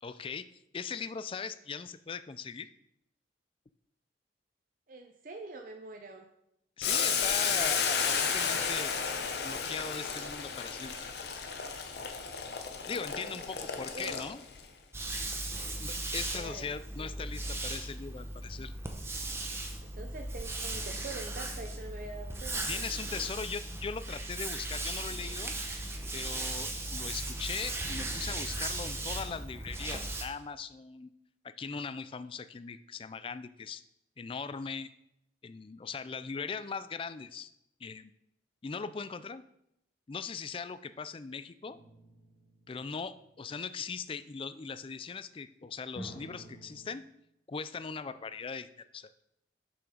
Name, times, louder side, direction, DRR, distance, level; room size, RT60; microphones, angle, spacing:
voice 1, 0.0-0.5 0.7-2.7 6.8-9.0 9.4-11.1 12.9-14.4 15.8-18.7 22.7-25.5 26.1-31.1 31.4-33.8 34.2-34.9 35.4-37.5 37.8-38.1 38.6-39.4 40.1-41.8 42.7-47.1 47.5-49.1, left 5 dB, 30° left, 13 dB, 0.3 m, -40 dB
voice 2, 4.9-6.3 13.2-14.2 16.1-16.7 17.0-17.3 19.8-22.8, right 3 dB, 50° right, 4 dB, 0.6 m, -45 dB
Boiling, 6.8-14.6, left 6 dB, 65° left, 0.9 m, -32 dB
sound 1, 14.9-30.2, right 2 dB, 15° right, 0.8 m, -37 dB
sound 2, 41.6-43.4 46.0-46.9, equal, 80° left, 2.6 m, -49 dB
6.9 x 5.9 x 5.0 m, 0.80 s
head